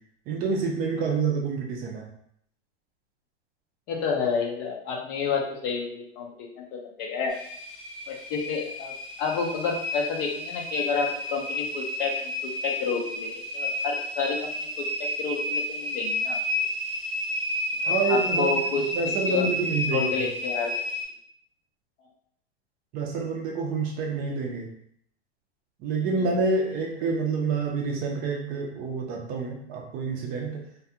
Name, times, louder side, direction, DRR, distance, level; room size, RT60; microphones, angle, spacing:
voice 1, 0.3-2.1 17.8-18.5 18.9-20.1 22.9-24.7 25.8-30.6, right 4 dB, 30° right, 1 dB, 0.5 m, -28 dB
voice 2, 3.9-7.4 8.1-8.9 9.2-16.4 17.9-18.9 19.3-19.5 19.9-20.7 22.0-22.1 26.2-26.3, left 5 dB, 30° left, 0 dB, 0.4 m, -30 dB
sound 1, 7.3-21.0, left 1 dB, ahead, 0.9 m, -31 dB
2.3 x 2.2 x 2.7 m, 0.68 s
hypercardioid pair, 135°, 32 cm